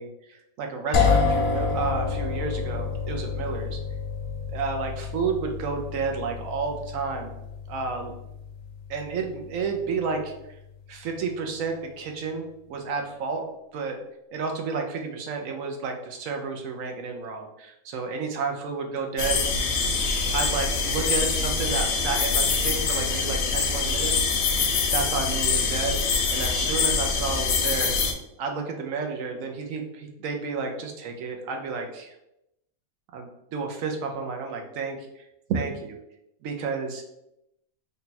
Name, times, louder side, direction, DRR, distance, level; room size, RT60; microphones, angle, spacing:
voice 1, 0.0-3.8 4.5-7.3 7.7-8.1 8.9-10.6 10.9-13.4 13.7-14.0 14.3-19.4 20.3-24.3 24.9-28.0 28.4-32.1 33.1-36.0 36.4-37.0, right 4 dB, 75° right, 3 dB, 1.0 m, -31 dB
sound 1, 0.9-10.7, left 5 dB, 60° left, 0.7 m, -29 dB
sound 2, 19.2-28.1, left 4 dB, 85° left, 1.0 m, -24 dB
3.3 x 2.2 x 4.0 m, 0.85 s
omnidirectional pair, 1.4 m